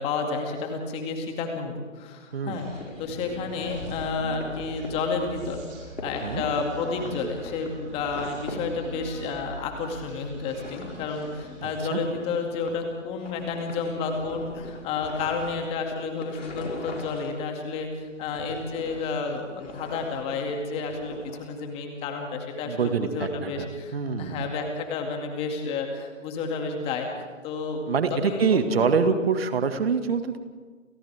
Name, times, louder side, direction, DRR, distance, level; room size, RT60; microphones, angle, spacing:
voice 1, 0.0-2.7 3.0-5.6 6.0-27.1 27.4-27.8 28.1-29.3, left 4 dB, 15° left, 3 dB, 2.5 m, -31 dB
voice 2, 2.3-2.6 6.2-6.4 11.6-12.0 22.7-24.5 27.9-30.4, right 5 dB, 50° right, 8 dB, 2.1 m, -25 dB
sound 1, 2.5-5.6 6.0-9.3 9.6-17.5 17.7-21.4, left 2 dB, 65° left, 5.6 m, -41 dB
Human voice, 2.5-11.9, right 1 dB, 15° right, 6.0 m, -43 dB
30.0 x 29.0 x 3.6 m, 1.5 s
figure-of-eight pair, 140°, 39 cm